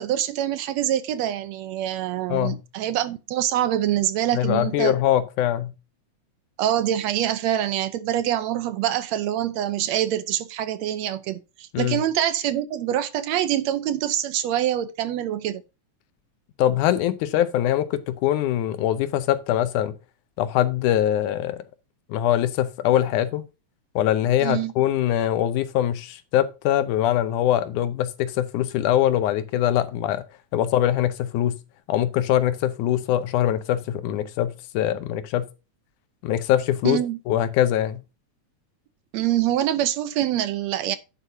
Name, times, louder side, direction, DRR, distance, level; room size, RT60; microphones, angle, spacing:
voice 1, 0.0-5.0 6.6-15.6 24.4-24.7 36.8-37.2 39.1-41.0, right 11 dB, 75° right, 1.8 m, -25 dB
voice 2, 2.3-2.6 4.3-5.7 11.7-12.0 16.6-20.0 20.4-21.6 22.1-23.4 24.0-30.2 30.5-31.6 31.9-35.5 36.2-37.0 37.3-38.0, left 12 dB, 85° left, 2.4 m, -23 dB
10.5 x 8.0 x 2.7 m
omnidirectional pair, 3.5 m